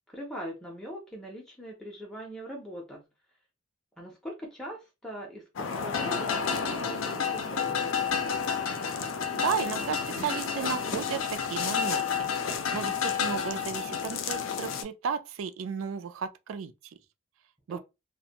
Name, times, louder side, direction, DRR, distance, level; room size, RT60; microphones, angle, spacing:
voice 1, 0.1-3.0 4.0-7.8 17.7-17.8, equal, 5° left, 0.5 m, -41 dB
sound 1, 5.6-14.8, left 6 dB, 70° left, 0.4 m, -30 dB
voice 2, 9.3-12.3 12.7-16.9 17.7-17.8, right 6 dB, 75° right, 0.4 m, -34 dB
2.4 x 2.1 x 2.8 m
head